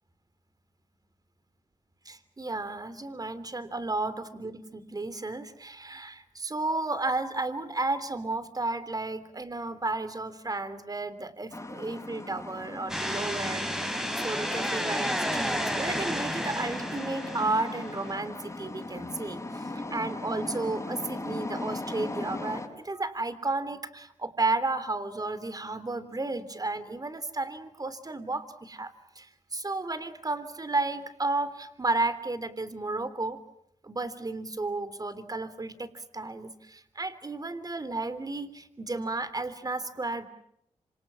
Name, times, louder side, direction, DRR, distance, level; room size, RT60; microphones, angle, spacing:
voice 1, 2.0-33.4 33.8-40.2, right 2 dB, 30° right, 13 dB, 3.3 m, -33 dB
sound 1, 11.5-22.7, left 2 dB, 25° left, 6.3 m, -38 dB
sound 2, 12.9-18.1, equal, 5° right, 4.9 m, -32 dB
27.5 x 26.0 x 7.4 m, 0.75 s
cardioid pair, 55°, 13 cm